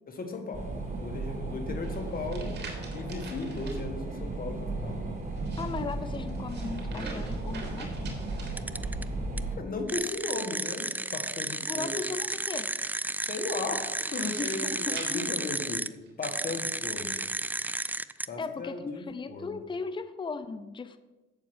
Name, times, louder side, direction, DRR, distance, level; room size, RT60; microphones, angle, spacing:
voice 1, 0.1-0.7 1.0-2.5 2.9-5.0 9.5-12.0 13.2-15.8 16.2-17.2 18.3-19.6, left 3 dB, 45° left, 5 dB, 1.8 m, -36 dB
sound 1, 0.5-9.6, right 2 dB, 40° right, 3.5 m, -35 dB
sound 2, 1.8-3.8 5.3-9.2 10.5-11.9 13.7-16.1 16.9-17.9, right 3 dB, 55° right, 2.8 m, -46 dB
voice 2, 5.6-7.9 11.6-12.7 14.4-15.5 18.4-21.0, left 4 dB, 25° left, 11 dB, 0.7 m, -37 dB
sound 3, 8.6-9.0 9.4-9.5 9.9-15.9 16.2-18.3, right 2 dB, 10° right, 0.4 m, -33 dB
8.4 x 7.3 x 6.3 m, 1.1 s
cardioid pair, 90°, 20 cm